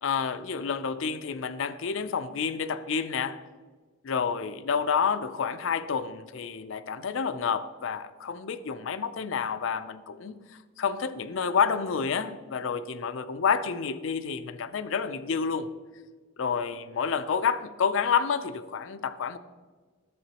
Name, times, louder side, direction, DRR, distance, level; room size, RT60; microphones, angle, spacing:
voice 1, 0.0-3.4 4.0-10.4 10.8-15.7 16.4-19.4, left 6 dB, 65° left, 0.4 m, -29 dB
11.0 x 7.6 x 2.9 m
head